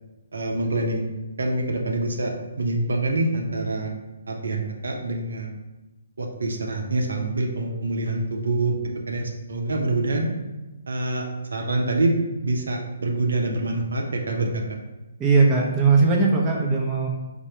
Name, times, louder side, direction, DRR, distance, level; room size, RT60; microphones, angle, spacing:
voice 1, 0.3-1.0 1.4-3.9 4.3-5.5 6.2-8.8 9.1-10.3 10.9-11.2 11.5-14.6, right 2 dB, 80° right, 1 dB, 0.6 m, -25 dB
voice 2, 15.2-17.1, right 4 dB, 20° right, -2 dB, 0.6 m, -19 dB
3.4 x 2.1 x 4.3 m, 1.1 s
hypercardioid pair, 140°, 0 cm